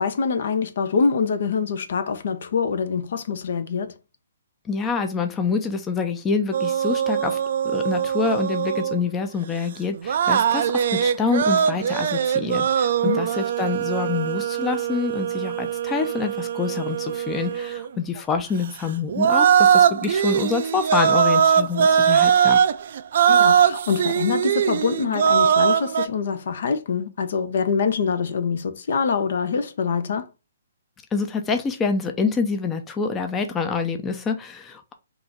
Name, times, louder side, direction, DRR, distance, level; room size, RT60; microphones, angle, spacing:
voice 1, 0.0-3.9 13.0-13.2 18.1-18.2 23.3-30.3, left 5 dB, 65° left, 0.7 m, -25 dB
voice 2, 4.6-7.4 7.6-22.6 31.1-34.9, left 5 dB, 15° left, 0.5 m, -26 dB
sound 1, 6.5-9.0 9.9-17.9 19.1-26.1, right 8 dB, 55° right, 0.3 m, -21 dB
3.8 x 2.6 x 4.5 m
hypercardioid pair, 145°, 0 cm